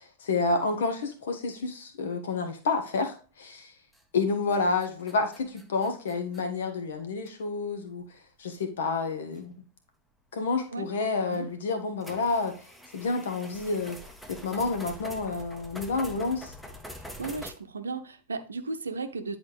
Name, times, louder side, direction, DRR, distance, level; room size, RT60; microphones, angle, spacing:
voice 1, 0.0-3.7 4.1-8.0 8.4-9.5 10.3-12.5 12.9-14.0 14.3-16.5, left 4 dB, 60° left, 6 dB, 1.3 m, -29 dB
sound 1, 3.9-4.2 4.5-6.4 7.3-7.4 8.0-8.1 9.4-9.5 11.3-11.4 12.0-17.5, equal, 5° left, 0.9 m, -45 dB
voice 2, 17.2-19.4, right 3 dB, 75° right, 8 dB, 0.7 m, -35 dB
10.0 x 4.2 x 3.2 m, 0.38 s
figure-of-eight pair, 90°, 0 cm